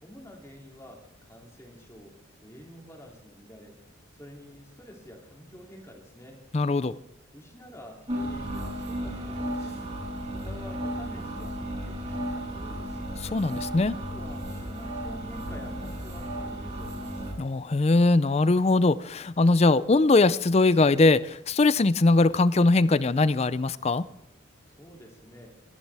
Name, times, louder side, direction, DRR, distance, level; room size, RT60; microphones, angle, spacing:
voice 1, 0.0-2.1 2.4-3.8 4.1-6.4 7.3-9.8 10.2-13.0 13.9-17.3 24.7-25.5, equal, 15° left, 0 dB, 2.8 m, -48 dB
voice 2, 6.5-6.9 13.2-14.0 17.4-24.1, left 3 dB, 30° left, 16 dB, 0.4 m, -21 dB
sound 1, 8.1-17.3, equal, 30° right, 5.6 m, -34 dB
23.0 x 11.5 x 3.5 m, 0.85 s
head